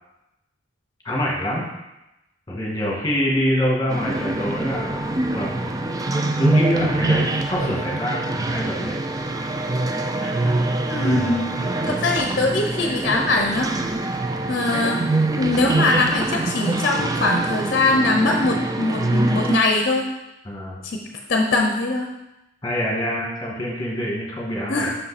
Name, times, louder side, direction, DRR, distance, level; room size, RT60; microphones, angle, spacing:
voice 1, 1.0-1.6 2.5-5.0 5.3-5.7 6.3-9.0 10.2-10.5 20.4-20.8 22.6-24.9, equal, 20° left, -3 dB, 1.7 m, -25 dB
sound 1, 3.9-19.6, right 2 dB, 20° right, 0.3 m, -24 dB
voice 2, 10.9-11.6 11.8-13.7 14.5-15.1 15.4-20.1 20.8-21.0 21.3-22.1 24.7-25.0, left 2 dB, 50° left, 1 dB, 0.7 m, -21 dB
5.8 x 5.4 x 4.1 m, 0.92 s
head